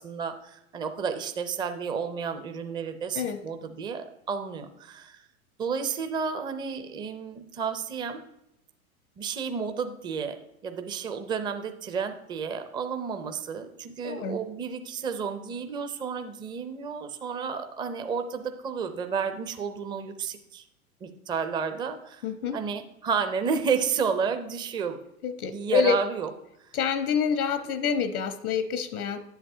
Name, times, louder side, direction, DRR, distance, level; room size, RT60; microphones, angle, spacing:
voice 1, 0.0-5.2 5.6-8.2 9.2-10.3 10.6-20.6 21.0-22.2 22.5-25.0 25.5-26.3, right 6 dB, 10° right, 7 dB, 0.4 m, -31 dB
voice 2, 14.0-14.4 22.2-22.6 25.2-26.0 26.7-29.2, left 6 dB, 80° left, 10 dB, 0.9 m, -27 dB
10.5 x 7.9 x 2.7 m, 0.81 s
hypercardioid pair, 100°, 44 cm